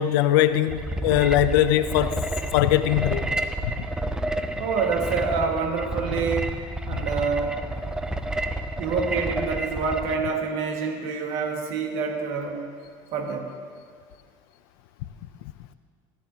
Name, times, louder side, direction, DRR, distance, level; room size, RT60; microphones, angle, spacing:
voice 1, 0.0-2.2 2.5-3.7 6.9-7.0, left 12 dB, 85° left, 0.5 m, -21 dB
sound 1, 0.7-10.2, right 1 dB, 5° right, 0.4 m, -30 dB
voice 2, 4.6-6.6 6.9-7.6 8.7-12.6 13.1-13.5, right 5 dB, 55° right, 1.8 m, -27 dB
15.0 x 13.5 x 2.9 m
cardioid pair, 150°, 12 cm